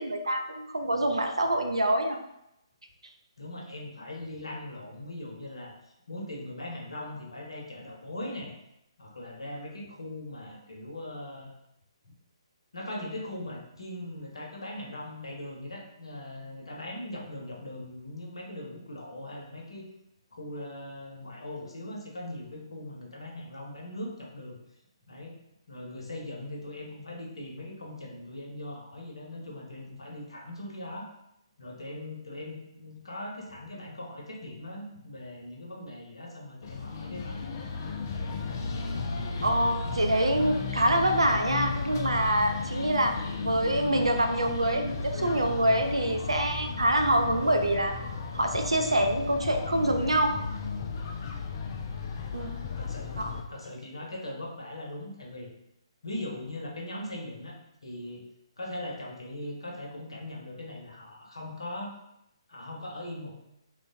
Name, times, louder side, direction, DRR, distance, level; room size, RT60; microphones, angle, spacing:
voice 1, 0.0-2.2 39.4-47.9 48.3-50.4 52.3-52.5 53.2-53.3, right 1 dB, 75° right, 5 dB, 0.4 m, -26 dB
voice 2, 3.4-8.5 9.0-11.5 12.0-12.1 12.7-19.8 20.3-24.6 25.0-25.3 25.7-31.1 31.6-37.4 52.8-53.1 53.5-55.5 56.0-57.5 57.8-58.2 58.6-61.9 62.5-63.4, left 1 dB, 65° left, -1 dB, 0.8 m, -40 dB
sound 1, 36.6-53.4, left 4 dB, 35° left, 0.3 m, -34 dB
3.2 x 2.2 x 2.6 m, 0.82 s
figure-of-eight pair, 135°, 3 cm